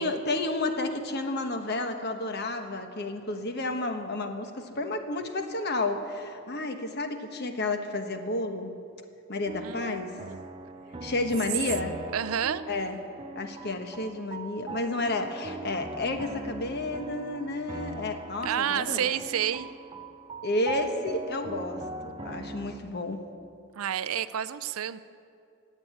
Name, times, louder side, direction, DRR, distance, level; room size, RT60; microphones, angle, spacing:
voice 1, 0.0-8.7 9.3-10.2 11.0-12.0 12.7-13.0 13.3-19.1 20.4-23.2, left 2 dB, 45° left, 7 dB, 1.2 m, -31 dB
sound 1, 9.4-22.8, right 2 dB, 20° right, 0.6 m, -40 dB
voice 2, 9.6-10.4 12.1-12.6 18.4-19.7 23.8-25.0, right 9 dB, 70° right, 14 dB, 0.5 m, -30 dB
15.0 x 8.4 x 9.4 m, 2.5 s
head